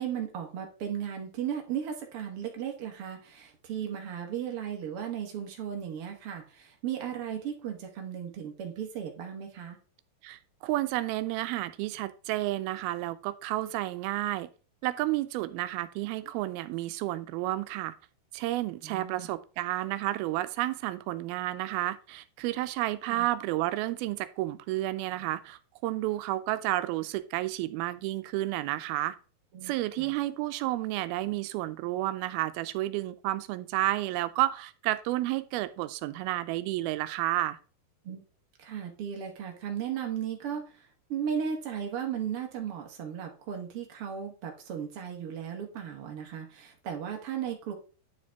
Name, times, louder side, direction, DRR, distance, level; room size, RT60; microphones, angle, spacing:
voice 1, 0.0-9.8 18.8-19.3 23.1-23.3 29.5-30.1 38.0-38.2 38.6-47.7, right 8 dB, 65° right, 2 dB, 1.4 m, -36 dB
voice 2, 10.2-14.5 14.8-18.0 18.3-29.2 29.6-37.6, right 16 dB, 85° right, 12 dB, 2.4 m, -31 dB
9.8 x 5.2 x 3.4 m, 0.36 s
omnidirectional pair, 4.3 m